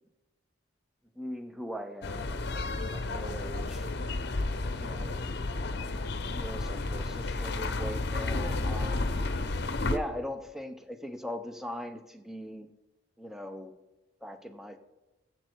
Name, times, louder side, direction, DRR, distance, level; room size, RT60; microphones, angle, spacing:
voice 1, 1.2-3.9 4.8-5.5 6.3-9.1 9.8-12.7 13.2-13.7 14.2-14.8, equal, ahead, 8 dB, 0.6 m, -40 dB
sound 1, 2.0-10.0, left 2 dB, 55° left, 0.7 m, -32 dB
14.0 x 7.7 x 4.5 m, 1.0 s
head